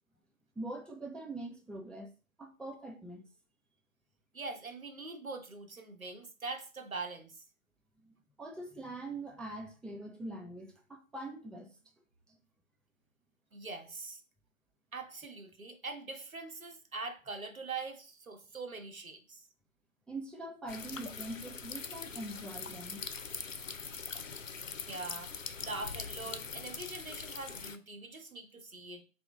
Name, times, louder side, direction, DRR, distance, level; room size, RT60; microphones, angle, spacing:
voice 1, 0.6-2.1 2.4-3.3 8.0-11.8 12.3-12.4 20.1-23.0, right 2 dB, ahead, 0.4 m, -43 dB
voice 2, 4.3-7.4 13.5-14.2 14.9-19.5 24.9-25.3 25.6-29.0, right 3 dB, 90° right, 0.9 m, -43 dB
sound 1, 20.7-27.8, left 5 dB, 70° left, 0.5 m, -42 dB
3.9 x 2.3 x 3.3 m
figure-of-eight pair, 175°, 40 cm